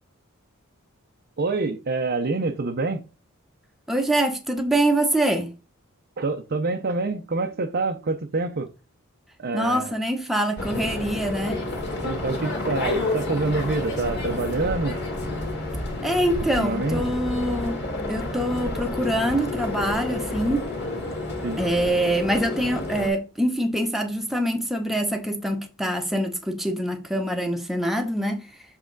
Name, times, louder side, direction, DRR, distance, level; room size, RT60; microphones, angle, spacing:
voice 1, 1.4-3.0 6.2-8.7 9.4-10.0 12.0-15.0 16.6-17.1 21.4-21.6, right 3 dB, 45° right, 0.6 m, -26 dB
voice 2, 3.9-5.5 9.5-11.6 16.0-17.8 18.1-20.7 21.6-28.5, right 1 dB, ahead, 0.8 m, -24 dB
sound 1, 10.6-23.1, left 2 dB, 50° left, 1.8 m, -30 dB
7.3 x 3.6 x 3.9 m
head